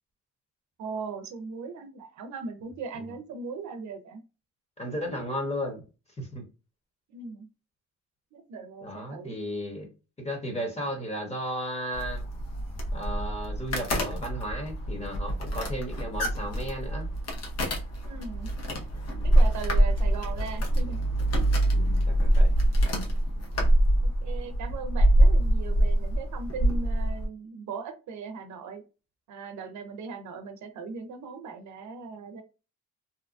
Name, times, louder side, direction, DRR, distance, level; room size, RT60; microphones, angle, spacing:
voice 1, 0.8-4.2 7.1-7.5 8.3-9.4 18.1-18.5 19.2-21.0 24.0-28.8 29.3-32.4, right 4 dB, 70° right, 6 dB, 0.6 m, -39 dB
voice 2, 4.8-5.8 6.2-6.5 8.8-9.9 10.2-12.2 12.9-17.1 19.2-19.4 21.7-22.5, equal, 20° left, 2 dB, 1.1 m, -34 dB
sound 1, 11.9-27.3, right 1 dB, 55° left, 0.9 m, -25 dB
2.8 x 2.2 x 2.5 m, 0.31 s
cardioid pair, 90°, 30 cm